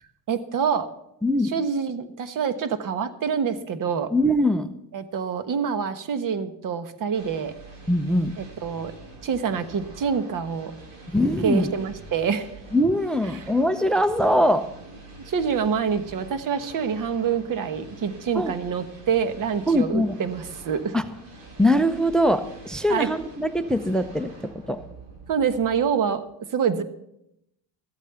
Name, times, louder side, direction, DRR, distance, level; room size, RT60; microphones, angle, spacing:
voice 1, 0.3-0.9 1.4-4.1 4.9-7.5 8.4-10.7 11.4-12.5 13.3-13.4 15.2-21.0 22.9-23.1 25.3-26.2 26.5-26.8, right 6 dB, 45° right, 11 dB, 1.3 m, -26 dB
voice 2, 1.2-1.5 4.1-4.7 7.9-8.3 11.1-11.7 12.7-14.7 18.4-18.5 19.7-20.1 20.9-21.0 21.6-24.8, equal, ahead, 12 dB, 0.5 m, -22 dB
sound 1, 7.1-26.1, right 2 dB, 75° right, 6.0 m, -46 dB
14.0 x 8.3 x 6.9 m, 0.79 s
cardioid pair, 135°, 46 cm